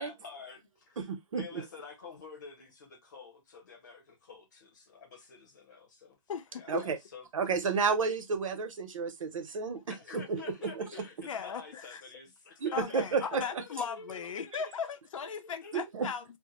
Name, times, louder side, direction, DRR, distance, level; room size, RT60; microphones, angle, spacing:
voice 1, 0.0-1.1 1.3-6.2 6.5-7.5 9.9-14.5 15.6-15.8, left 5 dB, 35° left, 0.8 m, -49 dB
voice 2, 1.0-1.4 6.7-7.0 7.3-9.8 10.1-10.7 12.6-13.6 15.9-16.1, right 5 dB, 85° right, 0.8 m, -31 dB
voice 3, 6.3-6.8 9.8-9.9 11.2-12.0 12.7-16.2, left 6 dB, 85° left, 0.6 m, -37 dB
2.1 x 2.1 x 2.9 m
hypercardioid pair, 180°, 16 cm